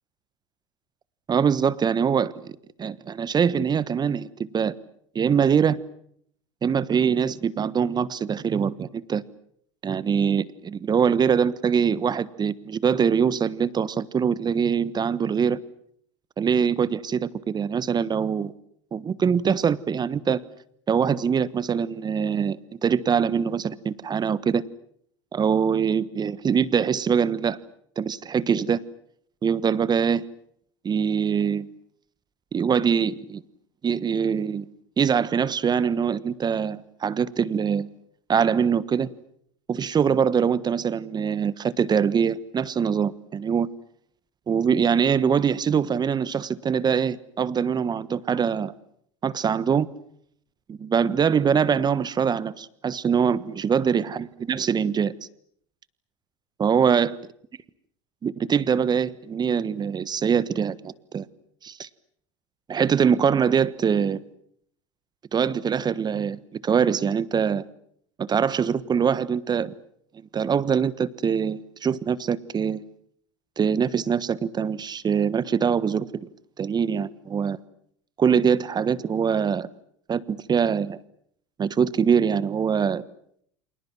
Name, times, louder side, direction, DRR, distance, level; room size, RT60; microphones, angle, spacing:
voice 1, 1.3-4.7 5.1-5.8 6.6-9.2 9.8-15.6 16.4-18.5 18.9-20.4 20.9-24.6 25.3-27.6 28.0-28.8 29.4-30.2 30.8-31.7 32.5-33.4 33.8-34.6 35.0-37.9 38.3-39.1 39.7-43.7 44.5-48.7 49.2-49.9 50.7-55.1 56.6-57.2 58.2-61.3 61.6-61.9 62.7-64.2 65.3-67.6 68.2-69.7 70.3-72.8 73.6-76.3 76.6-77.6 78.2-79.7 80.1-81.0 81.6-83.0, right 7 dB, 25° right, 18 dB, 1.4 m, -23 dB
30.0 x 27.0 x 6.2 m, 0.68 s
hypercardioid pair, 80°, 16 cm